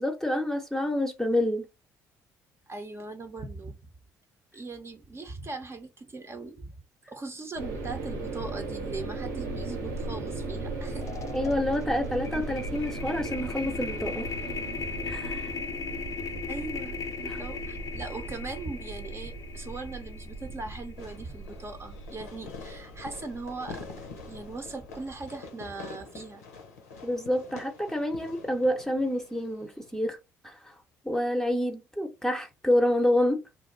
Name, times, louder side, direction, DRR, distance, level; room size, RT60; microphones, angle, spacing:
voice 1, 0.0-1.7 11.3-14.3 15.1-15.6 17.3-17.4 27.0-30.2 30.4-30.7 31.0-33.4, left 1 dB, 5° left, 0.7 m, -28 dB
voice 2, 2.7-3.8 4.5-6.7 7.1-11.1 16.5-23.9 24.3-26.4, right 3 dB, 30° right, 0.7 m, -39 dB
sound 1, 7.5-25.2, right 3 dB, 80° right, 0.8 m, -38 dB
sound 2, 10.5-10.7 11.0-21.2, left 6 dB, 40° left, 0.4 m, -38 dB
Fireworks, 21.0-30.0, left 4 dB, 85° left, 0.6 m, -46 dB
2.6 x 2.2 x 3.8 m
hypercardioid pair, 55°, 8 cm